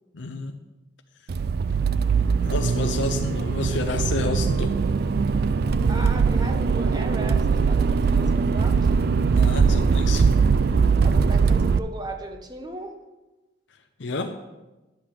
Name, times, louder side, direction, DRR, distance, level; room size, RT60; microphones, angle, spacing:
voice 1, 0.1-0.6 2.4-4.8 9.3-10.3 14.0-14.4, left 3 dB, 65° left, 6 dB, 0.7 m, -30 dB
Accelerating revving vroom, 1.3-11.8, right 5 dB, 50° right, 0.3 m, -21 dB
voice 2, 5.9-8.8 11.0-12.9, right 2 dB, 20° right, 4 dB, 1.1 m, -36 dB
11.5 x 8.0 x 5.0 m, 1.1 s
head